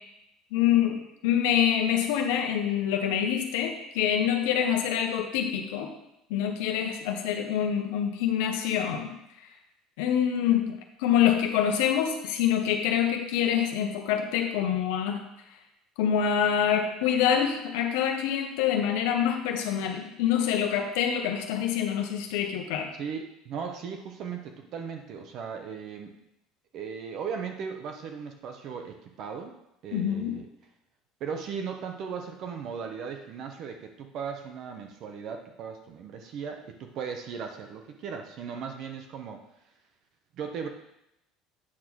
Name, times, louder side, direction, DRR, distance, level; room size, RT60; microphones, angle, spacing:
voice 1, 0.5-1.0 1.2-5.9 6.3-9.1 10.0-15.2 16.0-22.9 29.9-30.3, left 9 dB, 85° left, 3 dB, 1.0 m, -26 dB
voice 2, 23.0-26.2 26.7-29.5 29.8-30.5 31.2-39.4 40.4-40.7, right 6 dB, 40° right, 4 dB, 0.7 m, -37 dB
8.6 x 3.8 x 6.2 m, 0.84 s
cardioid pair, 180°, 0 cm